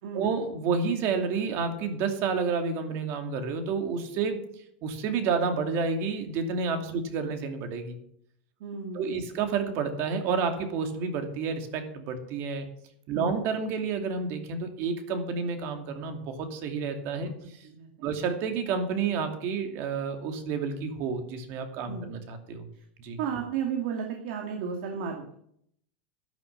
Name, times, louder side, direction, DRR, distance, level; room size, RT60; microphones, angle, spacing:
voice 1, 0.1-4.4 4.8-8.0 8.9-12.7 13.1-17.3 18.0-22.7 23.0-23.2, right 5 dB, 45° right, 5 dB, 2.6 m, -30 dB
voice 2, 8.6-9.3 13.1-13.4 17.6-18.1 21.9-22.2 23.2-25.3, right 6 dB, 60° right, 3 dB, 2.4 m, -34 dB
12.0 x 10.5 x 6.7 m, 0.69 s
supercardioid pair, 155°, 6 cm